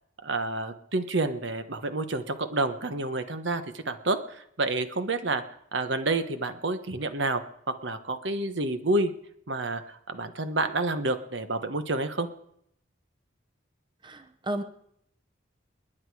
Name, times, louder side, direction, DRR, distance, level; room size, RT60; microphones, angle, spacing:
voice 1, 0.2-5.4 5.7-7.4 7.7-9.1 9.5-12.3, right 2 dB, 75° right, 9 dB, 1.2 m, -29 dB
voice 2, 14.0-14.6, right 1 dB, 25° right, 10 dB, 0.7 m, -33 dB
29.5 x 9.9 x 4.9 m, 0.74 s
head